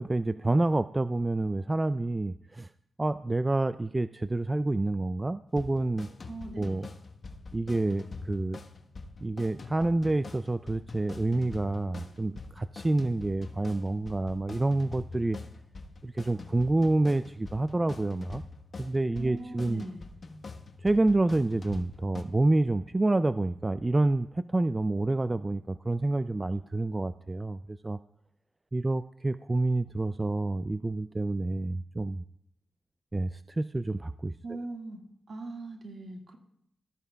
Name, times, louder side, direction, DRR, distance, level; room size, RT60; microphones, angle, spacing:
voice 1, 0.0-2.7 3.0-6.1 6.6-6.9 7.5-8.6 9.2-15.4 16.0-18.4 18.8-19.8 20.8-28.0 28.7-32.2 33.1-34.3, right 2 dB, 25° right, 12 dB, 0.3 m, -28 dB
sound 1, 5.5-22.2, left 3 dB, 55° left, 1.2 m, -45 dB
voice 2, 6.3-6.8 19.2-20.0 34.4-35.0 35.3-36.4, right 2 dB, 60° right, 2 dB, 1.8 m, -40 dB
18.5 x 13.5 x 2.3 m, 0.75 s
cardioid pair, 60°, 0 cm